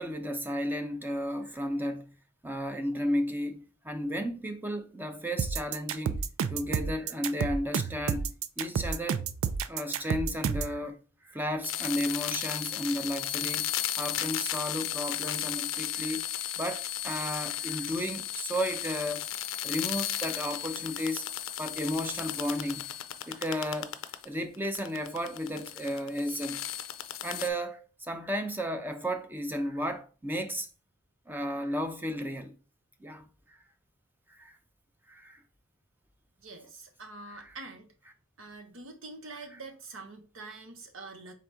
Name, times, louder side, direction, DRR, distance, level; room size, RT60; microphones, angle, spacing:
voice 1, 0.0-2.1 2.4-6.2 6.5-9.2 9.7-16.3 16.6-19.3 19.6-21.2 21.6-22.9 23.3-23.9 24.2-26.6 27.2-30.7 31.3-32.5 33.0-33.3 34.3-34.6 35.1-35.4 37.3-37.5, equal, 10° right, 0.5 m, -33 dB
sound 1, 5.4-10.8, right 6 dB, 90° right, 0.4 m, -30 dB
sound 2, 11.6-24.2 24.5-27.5, left 11 dB, 70° left, 0.5 m, -35 dB
voice 2, 36.4-37.9 38.4-41.3, right 3 dB, 75° right, 0.9 m, -45 dB
4.2 x 3.7 x 3.4 m
head